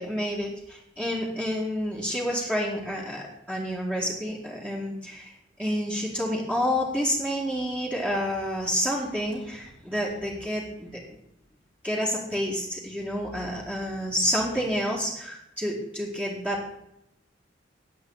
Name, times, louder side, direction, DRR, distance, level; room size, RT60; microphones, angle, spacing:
voice 1, 0.0-5.3 5.6-10.9 11.8-16.7, equal, 10° right, -6 dB, 2.1 m, -29 dB
19.0 x 7.8 x 4.1 m, 0.81 s
head